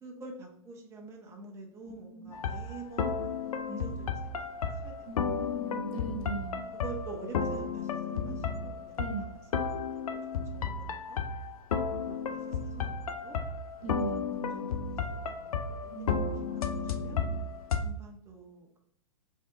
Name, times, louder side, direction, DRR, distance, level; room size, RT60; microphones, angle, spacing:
voice 1, 0.0-5.1 5.6-5.8 6.5-11.2 12.0-13.4 13.8-13.9 14.4-15.9 16.3-17.3 17.8-18.8, right 3 dB, 15° right, 1 dB, 0.6 m, -47 dB
voice 2, 1.8-2.3 5.1-6.6 9.0-9.2 13.8-14.3 15.9-16.9, right 3 dB, 75° right, 2 dB, 1.0 m, -39 dB
sound 1, 2.3-17.8, left 5 dB, 85° left, 0.4 m, -33 dB
3.3 x 2.7 x 2.4 m, 0.72 s
hypercardioid pair, 115°, 18 cm